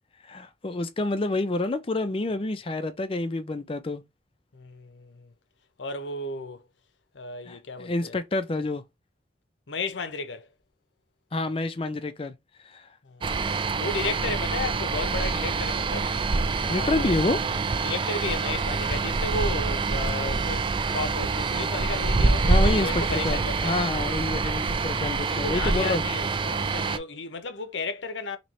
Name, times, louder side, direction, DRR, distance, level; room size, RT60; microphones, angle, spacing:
voice 1, 0.3-4.0 7.5-8.8 11.3-12.3 12.6-12.9 16.7-17.4 22.5-26.0, left 2 dB, 30° left, 0.5 m, -28 dB
voice 2, 4.5-5.3 5.8-6.7 7.1-8.2 9.7-10.5 13.0-13.4 13.8-16.1 16.7-17.2 17.8-23.8 25.1-28.4, left 3 dB, 85° left, 0.8 m, -34 dB
sound 1, 13.2-27.0, right 4 dB, 25° right, 0.4 m, -26 dB
3.1 x 2.9 x 4.1 m
head